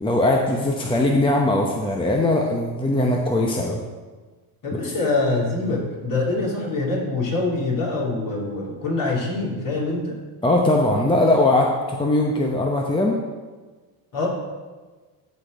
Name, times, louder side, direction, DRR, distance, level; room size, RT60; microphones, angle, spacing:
voice 1, 0.0-3.8 4.7-4.8 10.4-13.2, left 1 dB, 10° left, 0 dB, 0.8 m, -20 dB
voice 2, 4.6-10.2 14.1-14.3, left 2 dB, 40° left, -3 dB, 3.2 m, -24 dB
13.5 x 4.5 x 5.0 m, 1.3 s
cardioid pair, 110°, 49 cm